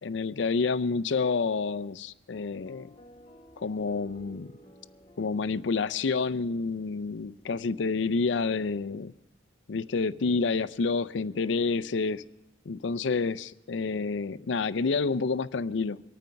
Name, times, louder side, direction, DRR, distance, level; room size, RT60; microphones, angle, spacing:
voice 1, 0.0-2.9 3.6-4.5 5.2-9.1 9.7-12.2 12.7-16.0, left 4 dB, 75° left, 0.5 m, -29 dB
sound 1, 2.3-7.7, equal, 25° left, 0.7 m, -54 dB
24.5 x 9.2 x 5.7 m
head